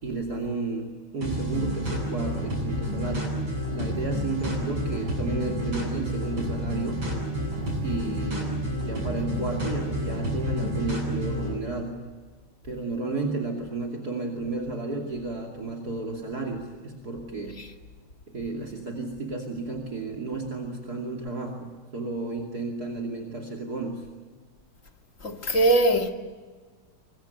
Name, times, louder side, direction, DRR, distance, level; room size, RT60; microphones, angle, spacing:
voice 1, 0.0-3.4 3.7-7.1 7.8-12.1 12.6-17.6 18.3-24.1, right 3 dB, 50° right, 3.2 m, -32 dB
sound 1, 1.2-11.5, equal, 70° right, 8.7 m, -30 dB
voice 2, 25.2-26.1, right 2 dB, 40° left, 2.3 m, -21 dB
24.5 x 22.5 x 9.2 m
omnidirectional pair, 2.2 m